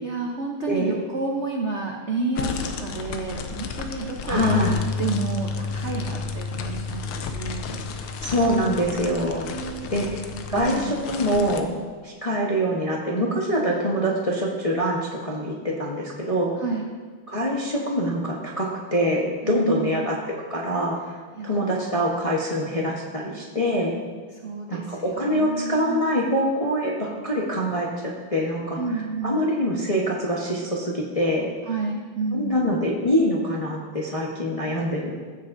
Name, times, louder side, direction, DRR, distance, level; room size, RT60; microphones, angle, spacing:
voice 1, 0.0-8.3 9.0-10.2 10.5-11.0 16.6-16.9 19.4-20.1 21.4-21.8 24.3-26.1 28.8-29.4 31.7-32.8, right 4 dB, 65° right, 0 dB, 0.6 m, -31 dB
voice 2, 0.7-1.0 4.3-4.7 8.2-9.5 9.9-10.2 10.5-11.7 12.0-16.5 17.3-20.2 20.5-21.1 21.4-23.9 24.7-27.9 28.3-28.8 29.2-31.5 32.3-35.1, equal, 30° left, -3 dB, 0.6 m, -24 dB
sound 1, 2.4-11.6, left 6 dB, 85° left, 1.6 m, -34 dB
Bass guitar, 4.4-10.6, left 4 dB, 50° right, 2.7 m, -32 dB
15.5 x 7.6 x 2.6 m, 1.5 s
omnidirectional pair, 2.3 m